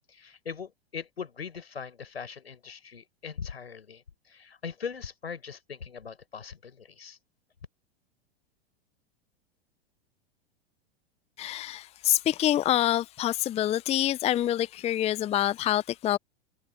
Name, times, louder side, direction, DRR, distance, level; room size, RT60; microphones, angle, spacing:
voice 1, 0.1-7.2, left 6 dB, 85° left, 5.6 m, -40 dB
voice 2, 11.4-16.2, left 13 dB, 20° left, 0.6 m, -26 dB
open air
hypercardioid pair, 95°, 31 cm